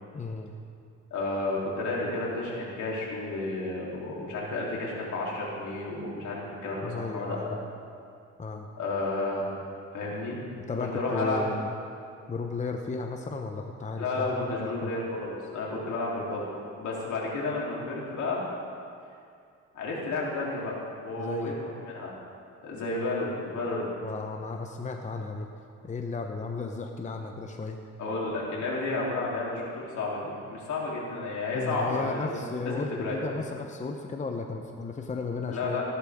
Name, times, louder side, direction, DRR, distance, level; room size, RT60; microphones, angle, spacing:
voice 1, 0.1-0.5 6.8-7.6 8.4-8.7 10.6-11.7 12.3-14.3 14.6-14.9 21.2-21.6 24.0-25.5 25.8-27.8 31.5-35.8, left 3 dB, 25° left, 3 dB, 0.8 m, -34 dB
voice 2, 1.1-7.6 8.8-9.5 9.9-10.4 10.8-11.4 14.0-16.4 16.8-18.4 19.7-22.1 22.6-23.9 28.0-33.1 35.5-35.8, left 2 dB, 70° left, -5 dB, 3.3 m, -32 dB
15.0 x 11.0 x 3.6 m, 2.4 s
cardioid pair, 90°, 30 cm